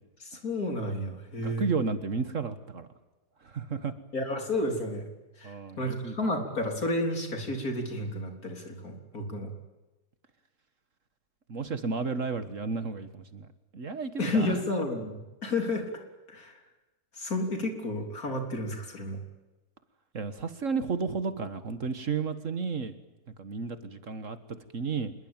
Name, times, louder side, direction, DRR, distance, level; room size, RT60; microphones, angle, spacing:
voice 1, 0.2-1.7 4.1-5.1 5.4-9.5 14.2-16.6 17.1-19.2, left 1 dB, 65° left, 4 dB, 4.3 m, -31 dB
voice 2, 1.4-2.9 3.4-3.9 5.4-6.3 11.5-13.5 13.7-14.6 20.1-23.0 23.4-25.1, right 5 dB, 55° right, 11 dB, 1.8 m, -32 dB
26.0 x 22.0 x 9.0 m, 1.1 s
omnidirectional pair, 1.7 m